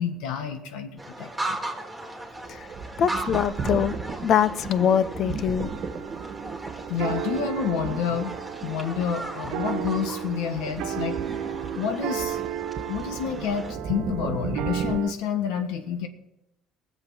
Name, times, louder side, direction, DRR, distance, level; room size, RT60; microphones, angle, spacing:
voice 1, 0.0-1.6 6.9-8.3 8.6-11.2 11.7-12.4 12.9-16.1, left 8 dB, 85° left, 7 dB, 1.5 m, -29 dB
sound 1, 1.0-13.7, right 2 dB, 5° right, 2.4 m, -38 dB
sound 2, 2.4-15.0, right 5 dB, 45° right, 1.5 m, -36 dB
voice 2, 3.0-3.9 4.2-5.7, left 8 dB, 55° left, 15 dB, 0.7 m, -23 dB
sound 3, 5.6-15.1, right 11 dB, 75° right, 0.6 m, -34 dB
19.5 x 7.2 x 5.8 m, 0.91 s
cardioid pair, 110°, 0 cm